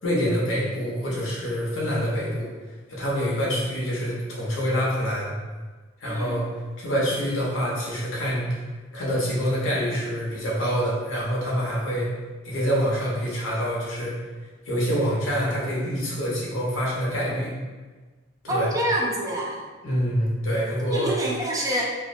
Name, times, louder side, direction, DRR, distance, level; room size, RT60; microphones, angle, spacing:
voice 1, 0.0-2.5 2.9-5.3 6.0-6.4 6.8-8.6 8.9-12.1 12.4-14.2 14.7-17.5 18.4-18.7 19.8-21.1, equal, 80° left, -6 dB, 0.8 m, -26 dB
voice 2, 6.0-6.4 18.5-19.6 20.9-21.9, right 1 dB, 20° right, -3 dB, 0.3 m, -26 dB
2.3 x 2.1 x 2.5 m, 1.3 s
head